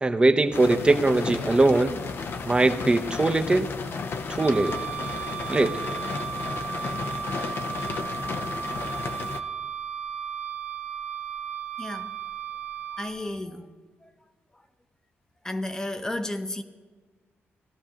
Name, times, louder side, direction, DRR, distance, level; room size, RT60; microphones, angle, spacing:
voice 1, 0.0-2.0 2.5-3.7 4.3-4.8 5.5-5.8, right 2 dB, 20° right, 0.7 m, -21 dB
sound 1, 0.5-9.4, left 4 dB, 55° left, 0.7 m, -33 dB
Wind instrument woodwind instrument, 4.4-13.2, right 7 dB, 90° right, 1.5 m, -35 dB
voice 2, 11.8-12.2 12.9-13.7 14.0-14.1 15.4-16.6, left 1 dB, 15° left, 0.8 m, -33 dB
17.5 x 13.0 x 2.9 m
cardioid pair, 105°, 5 cm